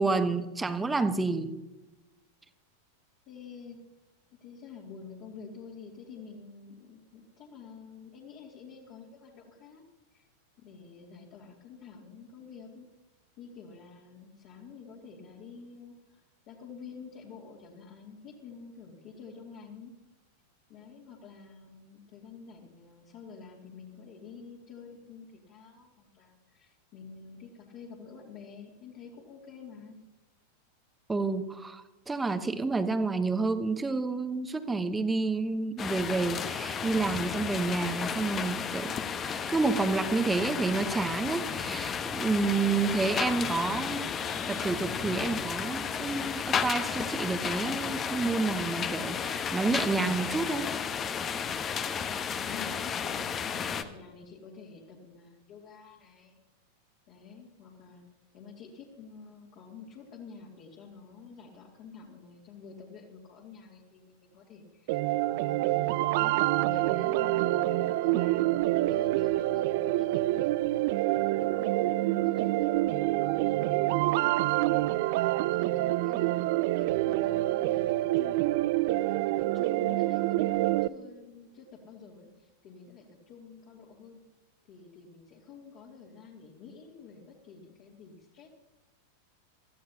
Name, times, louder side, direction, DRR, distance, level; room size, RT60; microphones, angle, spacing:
voice 1, 0.0-1.5 31.1-38.9 39.2-50.7, right 3 dB, 10° right, 10 dB, 1.0 m, -29 dB
voice 2, 3.3-3.8 4.4-9.8 10.1-10.3 10.6-12.9 13.4-19.9 20.7-30.0 52.4-56.4 57.1-58.0 58.3-70.5 70.9-76.4 76.8-78.4 79.0-84.2 84.7-88.5, left 5 dB, 40° left, -4 dB, 2.6 m, -49 dB
sound 1, 35.8-53.8, left 7 dB, 25° left, 1.1 m, -33 dB
sound 2, 64.9-80.9, right 17 dB, 50° right, 0.4 m, -27 dB
23.5 x 15.0 x 2.9 m, 1.0 s
figure-of-eight pair, 90°, 0 cm